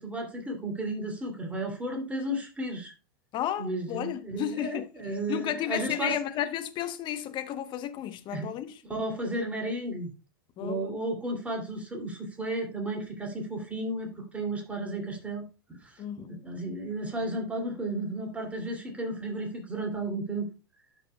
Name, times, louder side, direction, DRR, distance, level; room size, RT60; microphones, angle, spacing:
voice 1, 0.0-2.9 3.6-6.2 8.3-8.5 8.8-10.1 10.6-15.5 15.8-20.5, right 1 dB, 10° right, 2.7 m, -33 dB
voice 2, 3.3-4.9 5.3-8.8 10.6-10.9 16.0-16.4, left 11 dB, 40° left, 1.0 m, -33 dB
12.0 x 6.1 x 2.3 m
hypercardioid pair, 100°, 13 cm